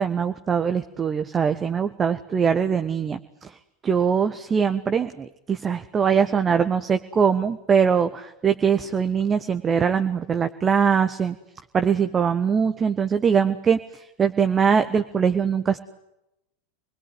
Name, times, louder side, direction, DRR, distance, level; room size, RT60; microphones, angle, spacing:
voice 1, 0.0-3.2 3.8-11.4 11.7-13.8 14.2-15.8, right 6 dB, 20° right, 9 dB, 1.4 m, -22 dB
28.0 x 21.5 x 9.4 m, 0.86 s
figure-of-eight pair, 85°, 0 cm